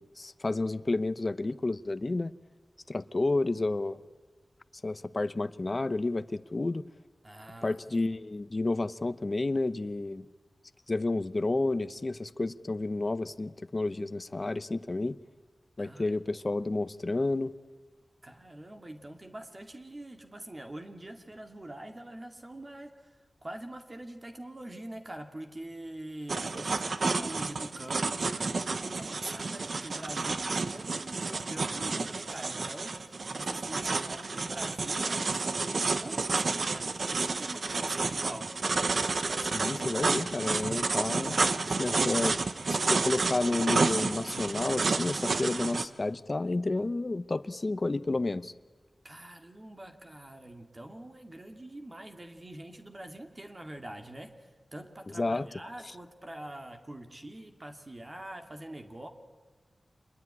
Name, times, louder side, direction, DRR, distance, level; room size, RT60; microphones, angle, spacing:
voice 1, 0.0-2.3 2.9-4.0 4.8-6.8 7.6-10.3 10.9-15.2 15.8-17.5 39.4-41.4 41.7-42.4 42.7-48.5 55.2-55.5, left 2 dB, 45° left, 13 dB, 0.9 m, -31 dB
voice 2, 7.2-7.8 15.8-16.2 18.2-38.5 49.0-59.1, right 1 dB, 35° right, 5 dB, 2.4 m, -44 dB
sound 1, 26.3-45.9, right 3 dB, 70° right, 1.3 m, -30 dB
27.0 x 21.0 x 9.8 m, 1.3 s
wide cardioid pair, 60°, 0 cm